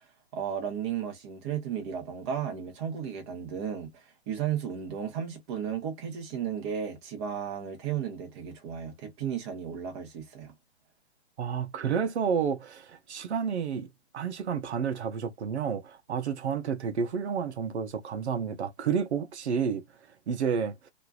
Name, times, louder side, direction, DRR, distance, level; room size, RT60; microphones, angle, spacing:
voice 1, 0.3-10.5, right 8 dB, 25° right, 0.9 m, -34 dB
voice 2, 11.4-13.9 14.1-19.8 20.3-20.9, right 6 dB, 80° right, 0.7 m, -30 dB
3.0 x 2.5 x 2.3 m
hypercardioid pair, 155°, 33 cm